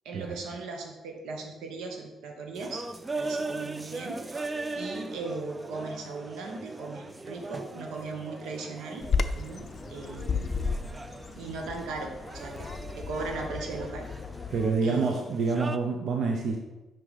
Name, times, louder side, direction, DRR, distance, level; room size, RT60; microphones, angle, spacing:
voice 1, 0.0-2.8 3.1-10.5 11.3-12.7 13.0-14.1 14.8-15.3, right 3 dB, 85° right, 2 dB, 1.1 m, -38 dB
sound 1, 2.6-15.8, right 2 dB, 20° right, 0.4 m, -40 dB
Bird vocalization bird call bird song, 9.0-14.7, left 5 dB, 50° left, 0.4 m, -33 dB
voice 2, 14.5-16.6, right 4 dB, 60° right, 2 dB, 0.6 m, -27 dB
6.0 x 5.0 x 4.1 m, 1.1 s
cardioid pair, 90°, 0 cm